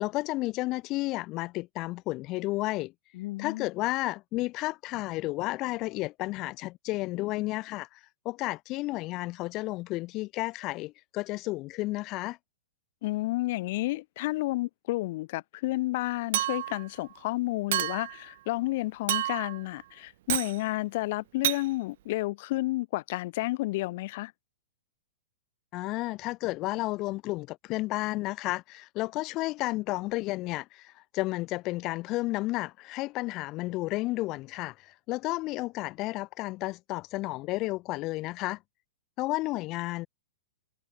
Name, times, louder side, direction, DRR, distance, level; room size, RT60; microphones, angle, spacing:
voice 1, 0.0-2.9 3.4-8.0 8.2-12.4 25.7-38.6 39.2-40.1, left 20 dB, 35° left, 2.3 m, -32 dB
voice 2, 3.1-3.7 13.0-24.3, left 19 dB, 50° left, 4.0 m, -31 dB
Chink clink, 16.3-16.8 17.7-18.2 19.1-19.6 20.3-20.6 21.4-21.6, right 14 dB, 60° right, 2.5 m, -29 dB
hypercardioid pair, 145°, 0 cm